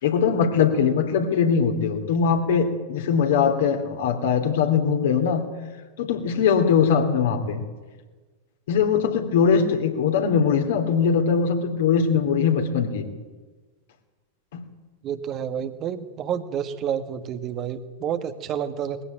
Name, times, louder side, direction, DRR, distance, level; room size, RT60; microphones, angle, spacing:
voice 1, 0.0-5.4 6.0-7.6 8.7-13.1 14.5-14.6, left 6 dB, 55° left, 5 dB, 3.0 m, -21 dB
voice 2, 15.0-19.0, right 8 dB, 35° right, 9 dB, 1.5 m, -29 dB
21.0 x 16.0 x 9.0 m, 1.3 s
figure-of-eight pair, 90°, 0 cm